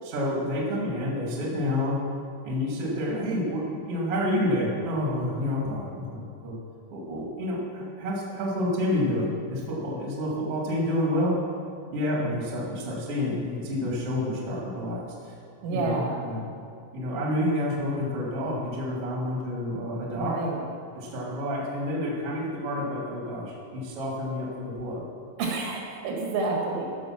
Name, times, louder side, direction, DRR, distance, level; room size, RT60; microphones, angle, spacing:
voice 1, 0.0-2.0 2.4-6.5 6.9-11.3 11.9-15.3 15.7-16.5 16.9-20.4 20.9-25.0, left 1 dB, 40° right, -3 dB, 2.4 m, -29 dB
voice 2, 15.6-16.2 20.2-20.6 25.4-26.9, right 3 dB, 80° right, -1 dB, 4.3 m, -29 dB
15.0 x 6.7 x 6.0 m, 2.3 s
omnidirectional pair, 5.5 m